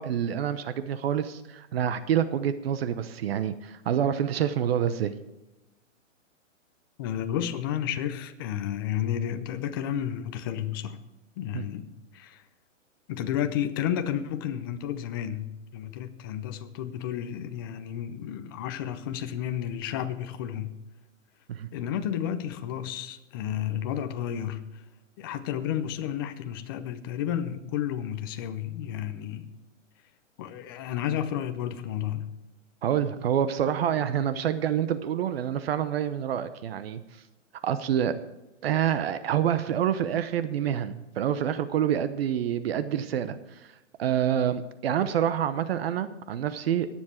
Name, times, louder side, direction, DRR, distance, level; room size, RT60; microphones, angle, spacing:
voice 1, 0.0-5.1 11.5-11.6 21.5-21.7 32.8-37.0 37.6-38.2 38.6-43.7 44.0-46.9, right 9 dB, 50° right, 0.8 m, -27 dB
voice 2, 7.0-11.0 11.4-12.4 13.1-20.7 21.7-24.8 25.2-29.5 30.4-32.3, left 10 dB, 20° left, 0.5 m, -32 dB
21.0 x 7.4 x 4.4 m
hypercardioid pair, 150°, 39 cm